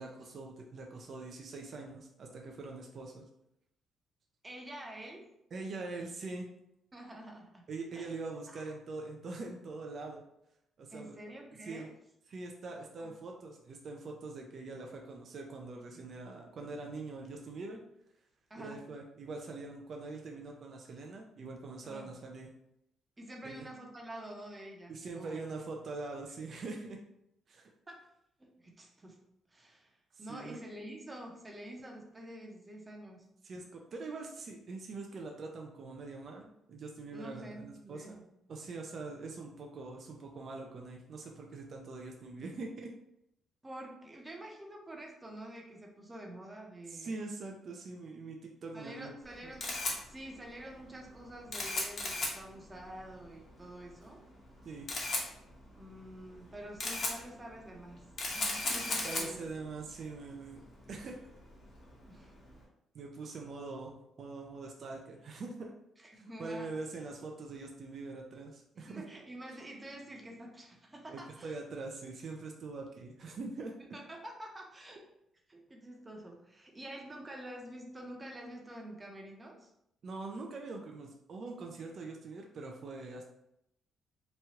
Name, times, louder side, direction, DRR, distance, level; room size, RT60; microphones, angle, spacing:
voice 1, 0.0-3.2 5.5-6.5 7.7-10.2 10.8-11.2 11.6-11.9 12.3-17.8 18.6-22.5 23.4-23.7 24.9-27.0 27.5-27.7 30.1-30.6 33.4-38.1 38.5-42.9 46.9-49.1 54.6-54.9 59.0-60.6 60.9-61.2 62.9-65.7 66.1-69.0 71.1-73.7 80.0-83.2, right 3 dB, 55° right, 1 dB, 0.4 m, -43 dB
voice 2, 4.4-5.3 6.9-7.6 7.9-8.2 8.5-8.7 10.9-11.9 12.7-13.1 16.6-16.8 18.5-18.8 21.8-22.1 23.2-25.4 27.9-28.1 28.4-29.2 29.5-33.3 37.1-38.3 43.6-47.2 48.7-49.7 50.1-54.2 55.7-58.0 58.3-59.5 62.1-62.3 66.0-66.7 68.7-71.6 73.9-75.0 75.5-79.7, right 1 dB, 20° right, 1 dB, 0.7 m, -48 dB
Camera, 49.2-62.6, left 2 dB, 50° left, 0.9 m, -39 dB
3.0 x 2.3 x 2.8 m, 0.81 s
cardioid pair, 90°, 0 cm